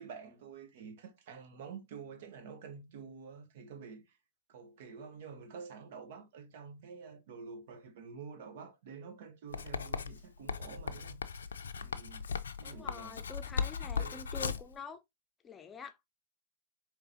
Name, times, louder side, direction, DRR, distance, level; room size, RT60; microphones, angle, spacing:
voice 1, 0.0-4.2 4.5-11.2 11.7-12.3 12.6-13.2 14.0-14.3, right 5 dB, 65° right, 1.1 m, -48 dB
Writing, 9.5-14.7, left 6 dB, 85° left, 0.5 m, -37 dB
voice 2, 12.6-15.0 15.4-16.0, left 5 dB, 20° left, 0.6 m, -46 dB
4.7 x 3.1 x 2.9 m
hypercardioid pair, 110°, 0 cm